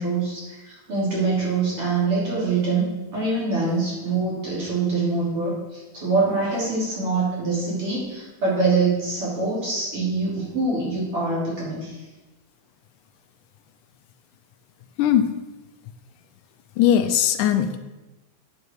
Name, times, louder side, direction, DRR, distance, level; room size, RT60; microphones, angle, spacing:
voice 1, 0.0-12.0, right 3 dB, 45° right, -7 dB, 3.9 m, -24 dB
voice 2, 15.0-15.3 16.8-17.8, left 10 dB, 80° left, 9 dB, 2.1 m, -19 dB
9.5 x 6.9 x 4.6 m, 1.1 s
omnidirectional pair, 3.7 m